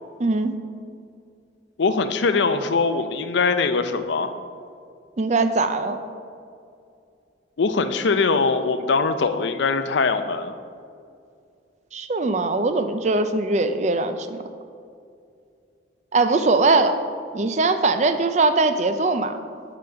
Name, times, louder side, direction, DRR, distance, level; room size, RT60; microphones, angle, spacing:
voice 1, 0.2-0.5 5.2-6.0 11.9-14.4 16.1-17.0 17.3-19.3, right 3 dB, 35° right, 9 dB, 0.4 m, -21 dB
voice 2, 1.8-4.3 7.6-10.6, left 4 dB, 70° left, 10 dB, 0.5 m, -22 dB
11.5 x 4.0 x 5.7 m, 2.4 s
head